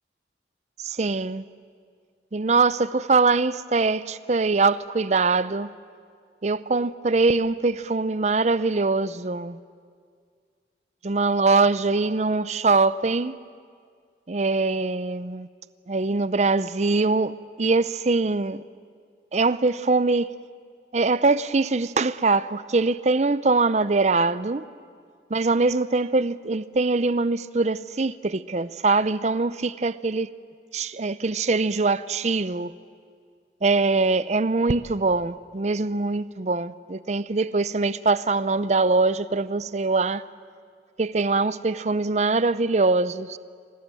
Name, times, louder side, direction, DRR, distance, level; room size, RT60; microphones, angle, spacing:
voice 1, 0.8-1.4 2.3-5.7 6.4-9.6 11.0-13.4 14.3-15.5 15.9-18.6 19.3-20.3 20.9-24.6 25.3-30.3 30.7-32.7 33.6-40.2 41.0-43.4, right 3 dB, 40° right, 0.6 m, -23 dB
25.5 x 19.0 x 9.1 m
head